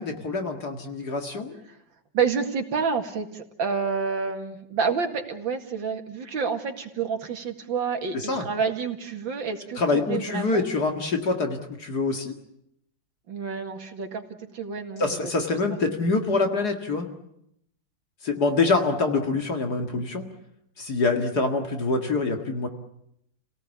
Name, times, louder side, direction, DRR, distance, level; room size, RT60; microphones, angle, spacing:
voice 1, 0.0-1.6 8.1-8.5 9.8-12.4 15.0-17.1 18.2-20.3 20.8-22.7, left 3 dB, 55° left, 4 dB, 2.5 m, -25 dB
voice 2, 2.1-10.6 13.3-14.2 14.5-15.3 15.7-15.8, right 5 dB, 75° right, 5 dB, 2.8 m, -29 dB
29.5 x 18.0 x 8.4 m, 0.77 s
omnidirectional pair, 2.1 m